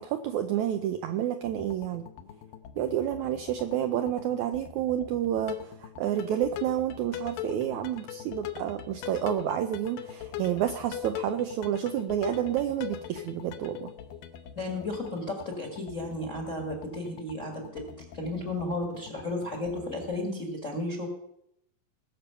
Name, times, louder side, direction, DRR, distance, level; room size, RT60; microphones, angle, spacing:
voice 1, 0.0-2.0 2.8-13.9, right 11 dB, 85° right, 7 dB, 1.7 m, -29 dB
sound 1, 1.4-20.2, left 10 dB, 80° left, 2.6 m, -42 dB
voice 2, 14.5-17.8 18.1-21.1, left 2 dB, 35° left, 3 dB, 1.3 m, -33 dB
19.5 x 6.9 x 5.6 m, 0.78 s
omnidirectional pair, 4.1 m